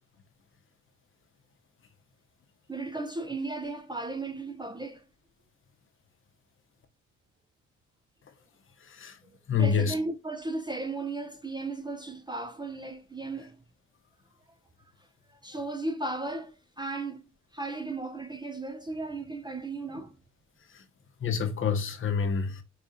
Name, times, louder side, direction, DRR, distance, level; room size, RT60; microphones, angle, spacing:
voice 1, 2.7-5.1 9.2-13.6 15.3-17.2 17.5-20.2, right 2 dB, 15° right, 0.4 m, -35 dB
voice 2, 9.5-9.9 20.7-20.8 21.2-22.6, left 6 dB, 45° left, 0.8 m, -27 dB
4.9 x 2.4 x 2.6 m
cardioid pair, 90°, 30 cm